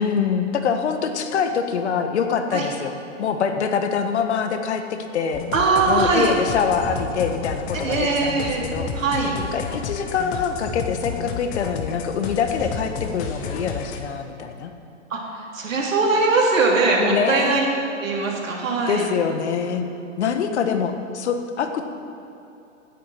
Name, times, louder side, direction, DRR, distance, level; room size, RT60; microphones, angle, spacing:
voice 1, 0.0-5.4 5.9-8.9 9.4-14.7 17.0-18.0 18.9-19.8 20.2-21.8, left 6 dB, 60° left, 7 dB, 1.5 m, -25 dB
sound 1, 5.3-14.0, left 5 dB, 20° left, 0.9 m, -31 dB
voice 2, 5.5-6.3 7.7-8.7 8.9-9.3 15.1-17.7 18.0-19.1, right 3 dB, 80° right, -2 dB, 3.6 m, -21 dB
17.0 x 8.8 x 5.8 m, 2.9 s
hypercardioid pair, 150°, 38 cm